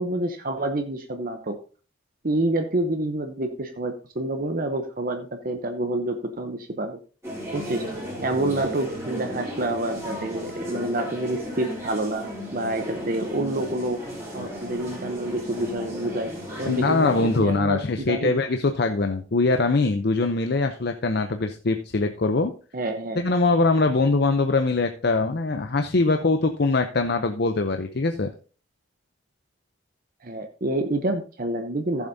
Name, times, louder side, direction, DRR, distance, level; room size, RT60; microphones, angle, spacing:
voice 1, 0.0-1.6 2.2-7.0 7.5-7.8 8.2-14.0 14.3-16.3 16.6-18.3 22.7-23.2 30.2-32.1, right 2 dB, 40° right, 6 dB, 0.8 m, -28 dB
sound 1, 7.2-17.4, equal, 15° right, 3.3 m, -35 dB
voice 2, 16.7-22.5 23.2-28.3, left 3 dB, 50° left, 6 dB, 0.6 m, -22 dB
15.0 x 7.2 x 2.7 m, 0.37 s
head